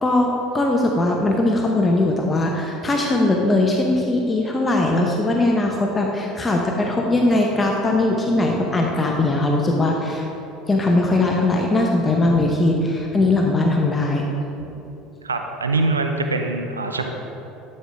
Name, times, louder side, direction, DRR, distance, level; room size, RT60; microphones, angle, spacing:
voice 1, 0.0-10.3 10.7-14.3, left 2 dB, 20° left, 0 dB, 0.9 m, -20 dB
voice 2, 15.2-17.1, right 3 dB, 85° right, 5 dB, 0.5 m, -23 dB
11.0 x 6.6 x 3.5 m, 3.0 s
figure-of-eight pair, 70°, 0 cm